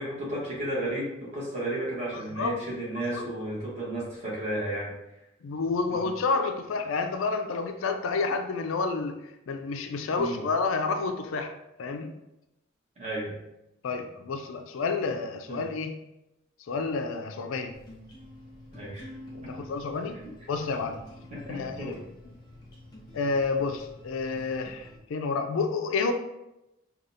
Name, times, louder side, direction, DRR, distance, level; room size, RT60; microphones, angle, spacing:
voice 1, 0.0-4.9 5.9-6.1 10.2-10.4 13.0-13.3 15.5-15.6 18.7-19.1 20.2-20.3 21.3-22.0, right 1 dB, 30° right, 1.2 m, -33 dB
voice 2, 2.1-2.6 3.1-3.2 5.4-9.2 9.5-11.5 11.8-12.1 13.8-16.0 16.7-17.8 19.3-20.2 20.5-21.0 21.5-22.0 23.1-26.1, left 4 dB, 75° left, 0.4 m, -29 dB
sound 1, 17.7-25.0, left 1 dB, 20° left, 0.8 m, -48 dB
4.9 x 2.3 x 2.7 m
head